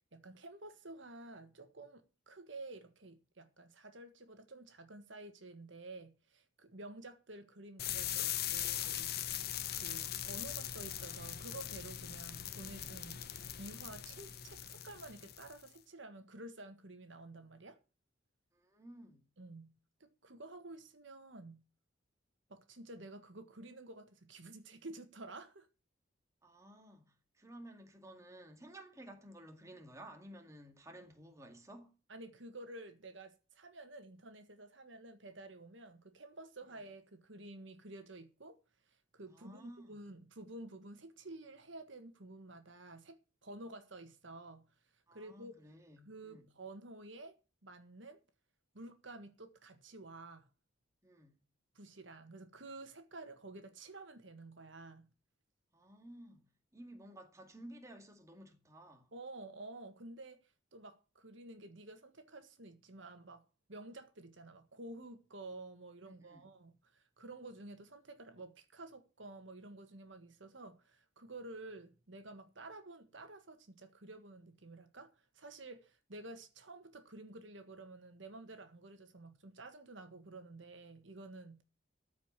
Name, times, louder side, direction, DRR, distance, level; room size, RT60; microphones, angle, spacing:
voice 1, 0.1-9.3 9.7-17.8 19.4-19.7 20.0-21.6 22.5-25.7 32.1-38.6 38.9-44.6 45.1-45.5 46.0-47.4 47.6-48.2 48.7-50.5 51.7-55.1 59.1-60.4 60.7-81.6, right 2 dB, 65° right, 1.6 m, -51 dB
sound 1, 7.8-15.7, left 11 dB, 50° left, 1.0 m, -40 dB
voice 2, 18.5-19.2 26.4-31.9 39.3-40.0 45.1-46.6 51.0-51.5 55.7-59.1 66.0-66.5, right 1 dB, 15° right, 2.1 m, -54 dB
14.0 x 5.2 x 8.1 m
head